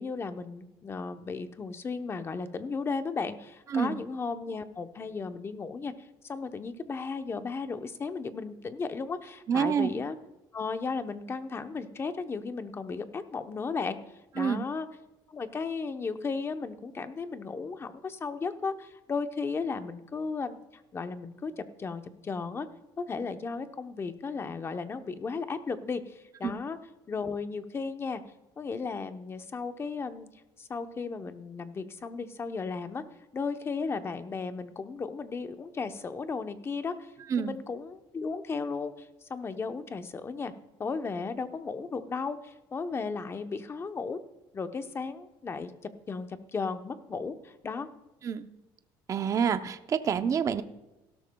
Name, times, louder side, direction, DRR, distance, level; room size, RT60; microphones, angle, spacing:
voice 1, 0.0-5.9 6.2-10.2 10.5-14.0 14.3-14.9 15.3-20.6 20.9-22.7 23.0-26.8 27.1-28.2 28.6-30.3 30.6-33.0 33.3-40.5 40.8-44.2 44.5-45.7 46.1-47.9, left 4 dB, 25° left, 8 dB, 0.9 m, -35 dB
voice 2, 9.5-9.9 14.4-14.7 26.4-26.5 37.3-37.6 48.2-48.5 49.1-50.6, right 7 dB, 35° right, 10 dB, 0.7 m, -27 dB
17.0 x 12.5 x 2.3 m, 0.99 s
cardioid pair, 120°, 9 cm